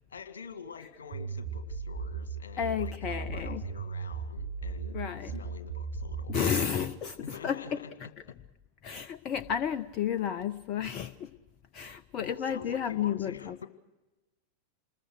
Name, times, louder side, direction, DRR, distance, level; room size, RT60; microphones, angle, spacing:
voice 1, 0.1-6.9 7.2-8.4 12.2-13.7, left 5 dB, 70° left, 9 dB, 1.9 m, -46 dB
sound 1, 1.1-6.5, right 5 dB, 60° right, 4.9 m, -37 dB
voice 2, 2.6-3.6 4.9-5.3 6.3-7.8 8.8-11.3 11.7-13.7, left 8 dB, 35° left, 13 dB, 0.8 m, -32 dB
28.0 x 21.0 x 6.2 m, 1.1 s
figure-of-eight pair, 90°, 0 cm